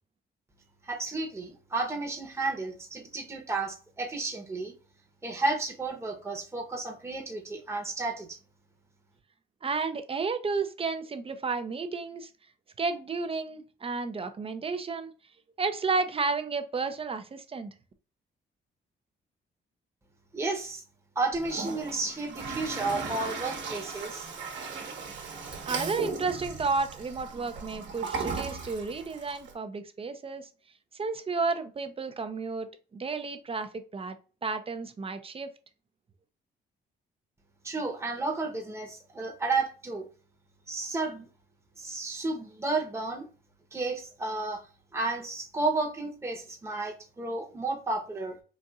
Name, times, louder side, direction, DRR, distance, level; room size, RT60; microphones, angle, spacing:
voice 1, 0.8-4.7 5.2-8.4 20.3-20.8 21.2-24.3 37.6-40.0 40.7-41.3 41.8-43.3 43.7-44.6 44.9-48.4, right 3 dB, 15° right, 0.9 m, -32 dB
voice 2, 9.6-12.3 12.8-15.1 15.6-17.7 25.7-30.5 30.9-32.7 32.9-34.2 34.4-35.5, right 4 dB, 30° right, 0.5 m, -32 dB
Toilet flush, 21.3-29.5, right 4 dB, 65° right, 1.1 m, -37 dB
4.1 x 2.5 x 2.4 m
cardioid pair, 90°, 20 cm